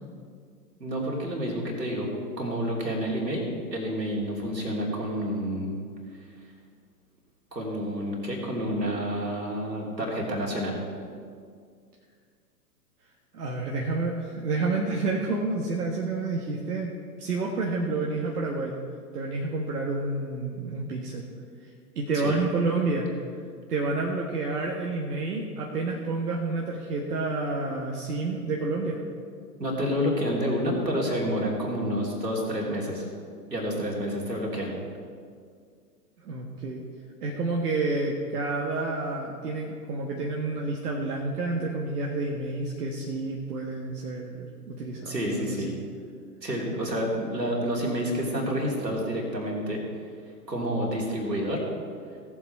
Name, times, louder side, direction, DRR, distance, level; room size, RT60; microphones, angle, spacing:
voice 1, 0.8-2.1 2.4-3.4 3.7-5.7 7.5-10.8 22.2-22.4 29.6-33.1 33.5-34.7 45.1-45.7 46.4-49.8 50.5-51.6, equal, 90° right, -2 dB, 3.0 m, -29 dB
voice 2, 13.3-16.9 17.2-18.8 19.1-21.3 21.6-23.1 23.7-29.0 36.2-36.9 37.2-45.7, right 3 dB, 70° right, -1 dB, 1.5 m, -29 dB
17.5 x 7.4 x 4.5 m, 2.2 s
figure-of-eight pair, 110°, 48 cm